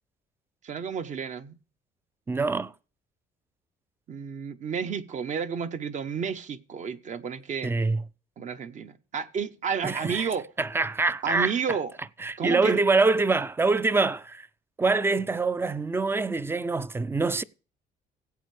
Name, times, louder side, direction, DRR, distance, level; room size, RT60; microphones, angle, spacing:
voice 1, 0.6-1.6 4.1-7.7 8.4-10.4 11.2-11.9 12.4-12.8, right 6 dB, 45° right, 0.9 m, -31 dB
voice 2, 2.3-2.7 7.6-8.0 9.8-10.3 10.6-11.5 12.2-14.5 14.8-17.4, right 3 dB, 15° right, 0.4 m, -25 dB
16.5 x 8.3 x 3.2 m
cardioid pair, 110°, 17 cm